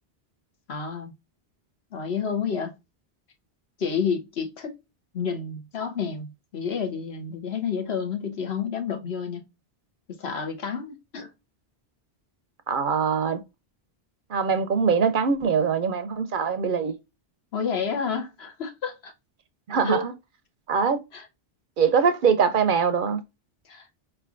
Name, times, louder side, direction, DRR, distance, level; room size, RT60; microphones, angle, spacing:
voice 1, 0.7-1.1 1.9-2.7 3.8-4.7 5.1-9.4 10.2-11.3 17.5-19.1 19.8-20.0 21.1-21.3 23.7-23.9, left 6 dB, 75° left, 1.2 m, -29 dB
voice 2, 12.7-13.4 14.3-16.9 19.7-20.1 20.7-21.0 21.8-23.2, right 6 dB, 60° right, 0.7 m, -22 dB
4.8 x 3.3 x 2.4 m
omnidirectional pair, 1.1 m